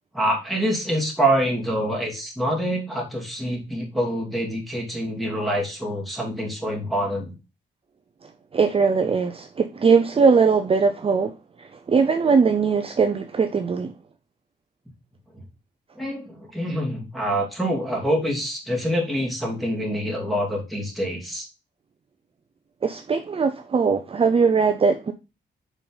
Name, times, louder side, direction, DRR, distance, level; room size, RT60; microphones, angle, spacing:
voice 1, 0.1-7.3 16.0-21.5, equal, ahead, 2.7 m, -26 dB
voice 2, 8.5-11.3 11.6-13.9 22.8-25.1, right 5 dB, 30° right, 0.6 m, -20 dB
7.2 x 5.5 x 4.0 m
wide cardioid pair, 165°, 19 cm